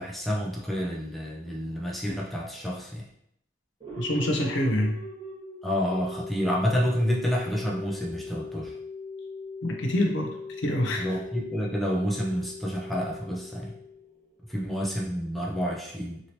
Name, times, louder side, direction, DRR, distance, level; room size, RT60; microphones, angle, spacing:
voice 1, 0.0-3.1 5.6-8.7 11.0-13.8 14.5-16.2, equal, ahead, -3 dB, 0.4 m, -29 dB
sound 1, 3.8-14.5, left 3 dB, 30° right, 1.2 m, -40 dB
voice 2, 4.0-5.0 9.6-11.2, left 1 dB, 70° left, 2 dB, 0.6 m, -26 dB
3.0 x 2.7 x 2.9 m, 0.72 s
head